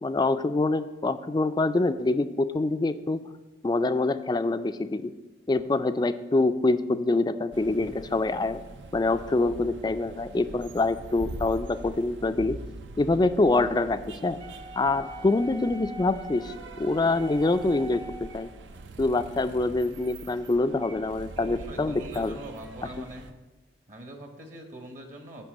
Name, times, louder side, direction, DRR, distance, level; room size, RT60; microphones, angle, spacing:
voice 1, 0.0-3.2 3.6-5.1 5.5-8.6 8.9-12.6 13.0-14.4 14.8-18.5 19.0-22.4, left 2 dB, 20° left, 11 dB, 0.3 m, -25 dB
sound 1, 7.5-23.3, right 2 dB, 75° right, 0.6 m, -44 dB
Wind instrument woodwind instrument, 14.4-18.6, right 1 dB, 20° right, 0.7 m, -44 dB
voice 2, 21.4-23.3 23.9-25.5, right 1 dB, 45° right, 3 dB, 1.0 m, -42 dB
10.0 x 3.7 x 7.2 m, 1.1 s
head